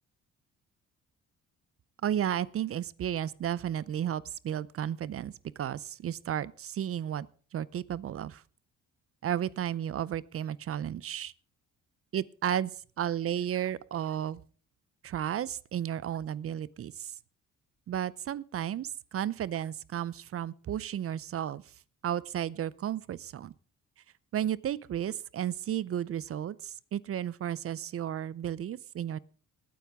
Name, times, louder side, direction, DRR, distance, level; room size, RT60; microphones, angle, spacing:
voice 1, 2.0-7.3 7.5-8.4 9.2-11.3 12.1-12.7 13.0-14.4 15.0-17.1 17.9-21.6 22.0-23.5 24.3-29.2, right 10 dB, 50° right, 0.6 m, -33 dB
20.0 x 9.4 x 3.6 m
cardioid pair, 90°, 30 cm